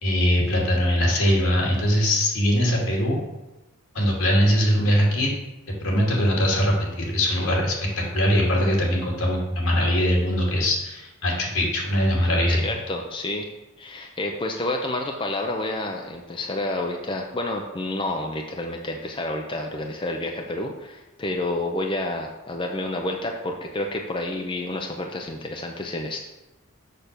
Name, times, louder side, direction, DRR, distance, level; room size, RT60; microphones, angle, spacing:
voice 1, 0.0-3.2 3.9-5.3 5.8-12.6, equal, 75° left, -2 dB, 2.6 m, -21 dB
voice 2, 12.5-13.5 13.8-26.3, left 2 dB, 25° left, 1 dB, 0.6 m, -29 dB
6.7 x 5.9 x 6.7 m, 1.0 s
head